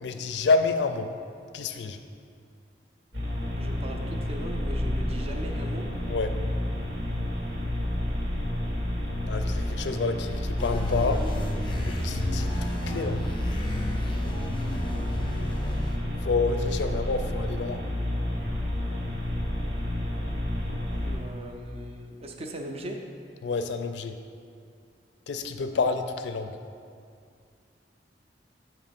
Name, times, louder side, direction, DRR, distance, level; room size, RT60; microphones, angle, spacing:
voice 1, 0.0-1.1 1.5-2.0 6.1-6.4 9.3-11.3 11.8-13.3 16.2-17.8 23.4-24.2 25.3-26.5, left 4 dB, 75° left, 8 dB, 0.4 m, -28 dB
sound 1, 3.1-21.2, left 1 dB, 90° right, 1.5 m, -30 dB
voice 2, 3.6-5.9 21.0-23.0 25.7-25.8, right 1 dB, 35° right, 3 dB, 0.5 m, -39 dB
sound 2, 10.6-16.0, left 1 dB, 30° left, 0.7 m, -33 dB
7.5 x 3.0 x 5.2 m, 2.3 s
head